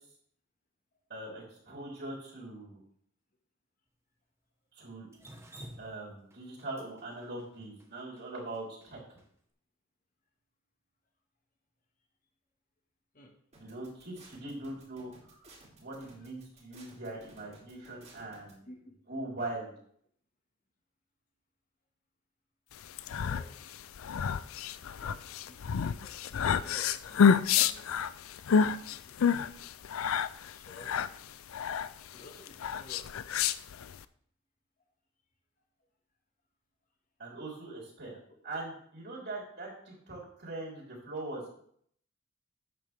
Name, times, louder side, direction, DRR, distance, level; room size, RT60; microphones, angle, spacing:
voice 1, 1.1-2.8 4.7-5.1 5.8-9.2 13.6-15.5 15.8-18.6 19.1-19.7 37.2-38.1 38.4-41.5, right 2 dB, 55° right, -3 dB, 3.9 m, -41 dB
Drip, 5.1-9.3, right 1 dB, 15° right, 1.3 m, -51 dB
voice 2, 13.1-13.7 18.7-19.2 23.1-23.5 24.9-28.2 28.6-29.6 30.4-31.0 32.1-33.1 38.3-38.4, left 1 dB, 40° left, 1 dB, 1.8 m, -53 dB
sound 1, 13.5-18.5, right 2 dB, 35° right, 3.3 m, -56 dB
sound 2, 22.8-34.0, left 7 dB, 80° left, 0.4 m, -29 dB
12.0 x 8.5 x 3.5 m, 0.65 s
head